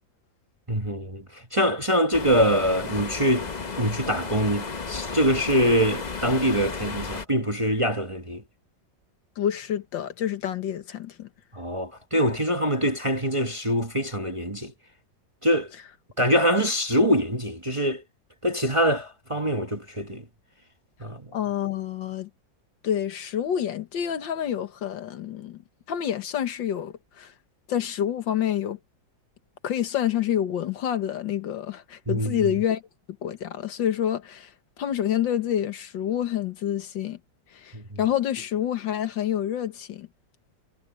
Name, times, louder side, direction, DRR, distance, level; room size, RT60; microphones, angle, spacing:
voice 1, 0.7-3.5 3.8-8.4 11.5-14.7 15.4-15.7 16.2-18.0 18.4-20.2 21.0-21.3 32.1-32.5 37.7-38.0, equal, 20° right, 1.0 m, -24 dB
sound 1, 2.1-7.3, left 4 dB, 30° left, 0.8 m, -33 dB
voice 2, 9.4-11.3 21.3-22.3 22.8-25.6 25.9-27.3 27.7-28.8 29.6-32.8 33.2-34.5 34.8-37.2 37.5-40.1, left 10 dB, 85° left, 1.9 m, -28 dB
omnidirectional pair, 2.0 m